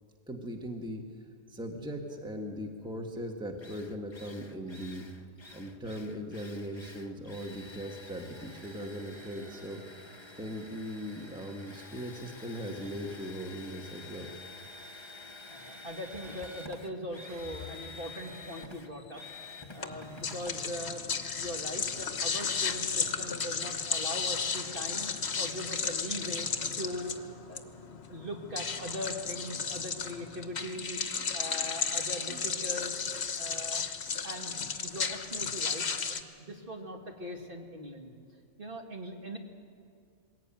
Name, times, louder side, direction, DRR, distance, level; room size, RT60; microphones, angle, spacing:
voice 1, 0.3-1.0 1.5-5.0 5.5-10.0 10.3-14.3, equal, 5° right, 2 dB, 1.5 m, -39 dB
Drill, 3.2-3.3 3.6-21.7, left 3 dB, 20° left, 1.0 m, -49 dB
voice 2, 15.5-19.2 19.7-21.0 21.4-25.1 25.4-26.5 26.8-27.2 27.5-27.6 28.1-31.0 31.3-33.0 33.4-33.9 34.2-34.6 34.8-38.1 38.6-39.4, equal, 40° right, 1 dB, 2.2 m, -40 dB
sound 1, 19.8-36.2, left 5 dB, 50° left, 1.3 m, -34 dB
21.0 x 17.0 x 9.0 m, 2.2 s
omnidirectional pair, 1.5 m